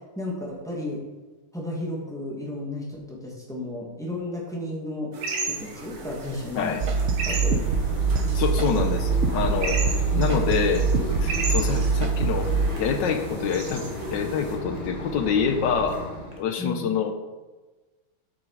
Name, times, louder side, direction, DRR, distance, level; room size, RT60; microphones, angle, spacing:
voice 1, 0.2-1.0 1.5-5.1 5.4-6.8 7.3-7.6 10.1-10.4 16.6-16.9, left 1 dB, ahead, -4 dB, 1.9 m, -33 dB
sound 1, 5.1-14.5, right 3 dB, 85° right, 2.4 m, -35 dB
Mechanisms, 5.4-16.4, left 1 dB, 20° left, 1.5 m, -35 dB
sound 2, 6.8-12.7, right 5 dB, 70° right, 0.7 m, -24 dB
voice 2, 8.3-9.8 10.2-10.9 11.2-12.5 12.8-13.8 14.1-16.1 16.4-17.1, left 7 dB, 70° left, 7 dB, 1.2 m, -26 dB
8.2 x 6.9 x 4.8 m, 1.2 s
omnidirectional pair, 2.4 m